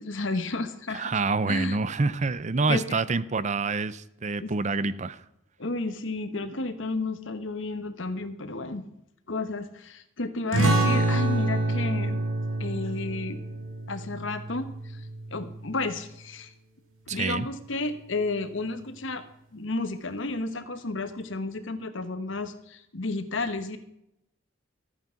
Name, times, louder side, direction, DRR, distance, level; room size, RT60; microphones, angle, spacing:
voice 1, 0.0-1.1 1.5-1.8 2.7-3.0 4.4-4.5 5.6-8.8 9.3-12.2 12.6-13.4 13.9-16.5 17.1-19.2 19.5-23.8, left 3 dB, 65° left, 10 dB, 1.1 m, -32 dB
voice 2, 0.9-5.2 17.1-17.5, right 3 dB, 35° right, 16 dB, 0.5 m, -27 dB
sound 1, 10.5-15.7, right 2 dB, 75° right, 3.2 m, -27 dB
13.5 x 9.2 x 5.8 m, 0.80 s
head